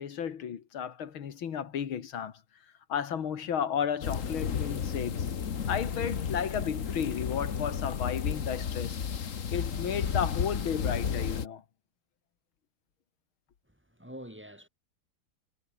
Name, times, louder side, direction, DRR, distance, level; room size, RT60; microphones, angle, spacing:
voice 1, 0.0-2.4 2.9-9.0 9.5-11.6, left 8 dB, 75° left, 2.5 m, -33 dB
sound 1, 4.0-11.5, left 7 dB, 45° left, 1.5 m, -32 dB
voice 2, 13.7-14.7, equal, 5° right, 7.1 m, -46 dB
omnidirectional pair, 2.2 m